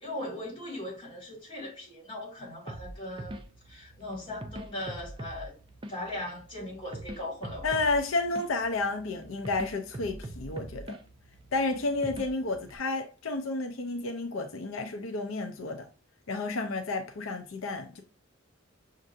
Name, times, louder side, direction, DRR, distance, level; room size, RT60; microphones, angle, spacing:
voice 1, 0.0-5.5 5.9-7.8, left 1 dB, 25° left, 2.2 m, -39 dB
sound 1, 2.7-12.8, right 1 dB, 25° right, 0.5 m, -44 dB
voice 2, 7.6-11.0 11.5-15.9 16.3-18.0, left 3 dB, 85° left, 0.6 m, -31 dB
6.3 x 2.6 x 2.6 m
head